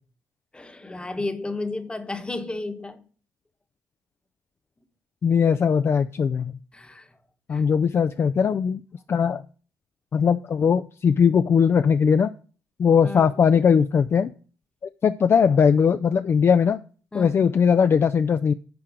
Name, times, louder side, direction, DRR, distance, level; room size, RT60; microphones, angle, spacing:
voice 1, 0.5-3.1 6.7-7.2 7.5-7.6 13.0-13.5 17.1-17.6, left 3 dB, 15° left, 1.1 m, -33 dB
voice 2, 5.2-6.5 7.5-8.8 9.1-9.4 10.1-12.3 12.8-14.3 15.0-16.8 17.1-18.5, left 6 dB, 45° left, 0.4 m, -19 dB
8.7 x 4.5 x 6.2 m
cardioid pair, 75°, 6 cm